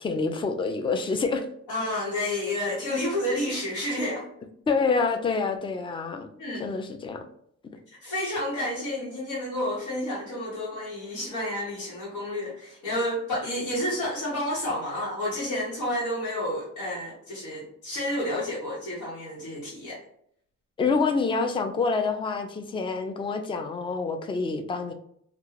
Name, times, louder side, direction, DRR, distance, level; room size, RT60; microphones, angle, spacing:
voice 1, 0.0-1.5 4.7-6.3 6.5-7.2 20.8-24.9, left 4 dB, 15° left, 6 dB, 0.4 m, -27 dB
voice 2, 1.7-4.3 6.4-6.6 8.0-20.0, left 1 dB, 80° left, -9 dB, 1.3 m, -30 dB
2.4 x 2.3 x 3.1 m, 0.68 s
cardioid pair, 90°, 30 cm